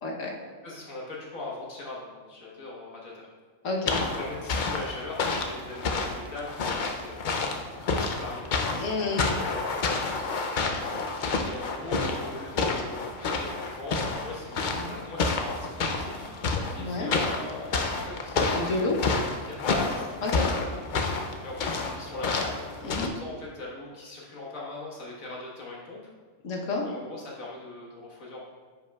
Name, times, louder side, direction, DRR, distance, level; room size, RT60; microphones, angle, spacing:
voice 1, 0.0-0.3 3.6-4.0 8.8-9.3 14.7-14.9 16.8-17.1 18.5-19.0 20.2-20.5 22.8-23.1 26.4-26.9, left 3 dB, 70° left, -1 dB, 1.4 m, -30 dB
voice 2, 0.6-3.3 4.2-7.3 7.6-11.1 11.4-16.3 16.7-18.8 19.4-20.1 20.6-20.8 21.4-22.6 23.0-26.0 26.8-28.4, left 2 dB, 85° left, -4 dB, 1.9 m, -40 dB
sound 1, 3.9-23.1, left 3 dB, 55° left, 0.5 m, -29 dB
9.4 x 5.5 x 2.3 m, 1.5 s
omnidirectional pair, 1.4 m